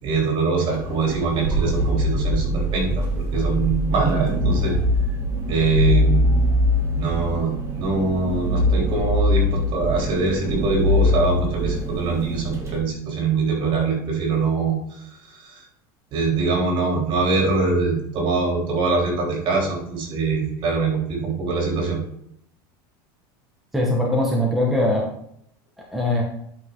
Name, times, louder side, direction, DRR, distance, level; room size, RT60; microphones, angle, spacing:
voice 1, 0.0-4.7 5.5-6.3 7.0-15.6 16.1-22.0, right 4 dB, 45° right, 0 dB, 3.9 m, -23 dB
sound 1, 0.7-12.8, left 1 dB, 25° right, 3.1 m, -23 dB
voice 2, 23.7-25.1 25.9-26.2, left 1 dB, ahead, -3 dB, 1.8 m, -21 dB
11.0 x 5.7 x 4.0 m, 0.71 s
supercardioid pair, 130°, 11 cm